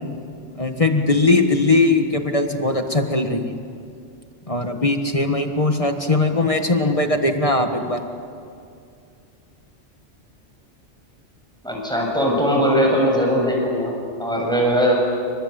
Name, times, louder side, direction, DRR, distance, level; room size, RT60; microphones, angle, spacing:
voice 1, 0.6-3.6 4.5-8.0, left 2 dB, 30° left, 5 dB, 1.7 m, -20 dB
voice 2, 11.6-13.9 14.2-15.0, equal, 5° left, -1 dB, 7.0 m, -19 dB
28.0 x 25.5 x 8.3 m, 2.4 s
omnidirectional pair, 1.2 m